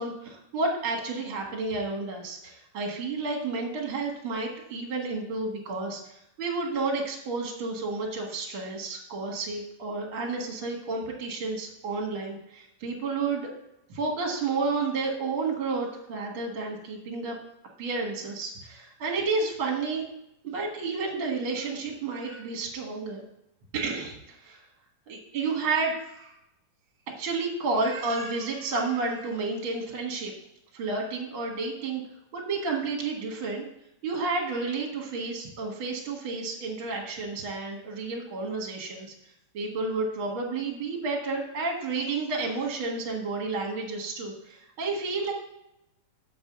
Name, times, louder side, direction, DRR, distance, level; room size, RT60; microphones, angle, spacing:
voice 1, 0.0-6.0 6.4-13.5 13.9-17.3 17.8-20.0 20.4-23.2 23.7-24.6 25.1-26.4 27.2-30.3 30.7-32.0 32.3-33.6 34.0-39.1 39.5-45.3, right 3 dB, 50° right, 0 dB, 1.8 m, -31 dB
7.0 x 4.7 x 6.7 m, 0.81 s
omnidirectional pair, 4.1 m